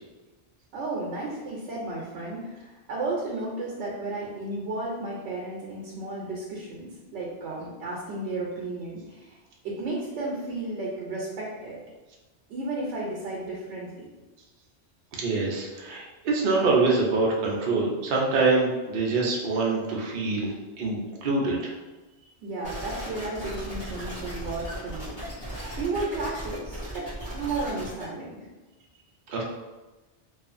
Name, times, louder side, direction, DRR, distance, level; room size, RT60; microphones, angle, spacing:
voice 1, 0.7-9.4 9.6-11.8 12.5-14.1 22.4-27.1 27.3-28.4, right 2 dB, 80° right, -3 dB, 0.9 m, -33 dB
voice 2, 15.2-20.5 20.8-21.7 29.3-29.4, right 3 dB, 55° right, -2 dB, 0.6 m, -25 dB
sound 1, 22.6-28.0, equal, 45° left, 1.2 m, -36 dB
2.7 x 2.4 x 2.4 m, 1.1 s
omnidirectional pair, 1.1 m